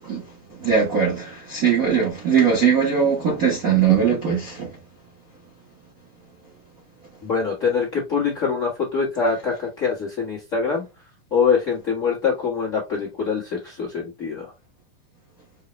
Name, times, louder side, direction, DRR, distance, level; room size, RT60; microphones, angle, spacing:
voice 1, 0.6-4.7, right 7 dB, 85° right, 0.7 m, -20 dB
voice 2, 7.2-10.8 11.3-14.5, left 5 dB, 40° left, 1.1 m, -24 dB
6.5 x 2.4 x 3.1 m
omnidirectional pair, 3.8 m